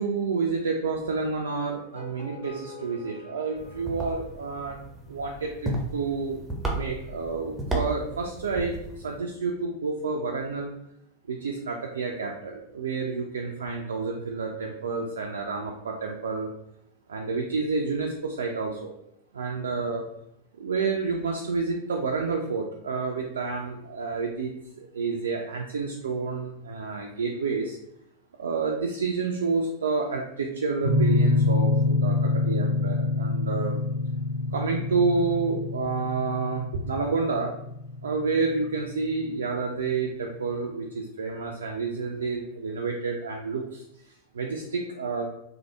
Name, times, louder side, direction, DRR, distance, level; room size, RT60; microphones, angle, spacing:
voice 1, 0.0-4.8 5.1-6.4 6.7-8.7 9.0-10.7 11.3-16.5 17.1-18.9 19.3-20.0 20.6-24.5 24.8-27.8 28.4-32.1 32.5-33.8 34.5-37.5 38.0-43.8 44.4-45.3, right 4 dB, 70° right, 0 dB, 0.3 m, -29 dB
sound 1, 1.7-4.9, left 2 dB, 60° left, 1.0 m, -45 dB
sound 2, 3.6-9.2, right 2 dB, 10° right, 0.7 m, -34 dB
sound 3, 30.8-39.5, left 3 dB, 90° left, 0.5 m, -26 dB
3.2 x 2.0 x 2.8 m, 0.78 s
figure-of-eight pair, 90°, 0 cm